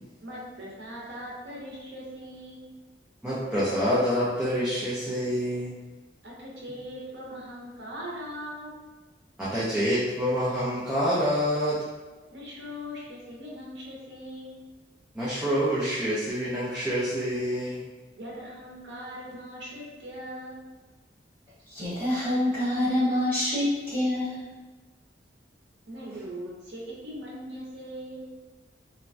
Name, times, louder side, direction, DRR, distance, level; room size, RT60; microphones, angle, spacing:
voice 1, 0.2-2.6 6.2-8.7 12.3-14.6 18.2-20.6 25.9-28.3, equal, 70° right, -4 dB, 0.7 m, -40 dB
voice 2, 3.2-5.8 9.4-11.8 15.1-17.8, equal, 5° right, -11 dB, 0.5 m, -27 dB
voice 3, 21.7-24.5, left 1 dB, 15° left, -12 dB, 1.4 m, -26 dB
3.1 x 2.2 x 2.5 m, 1.2 s
head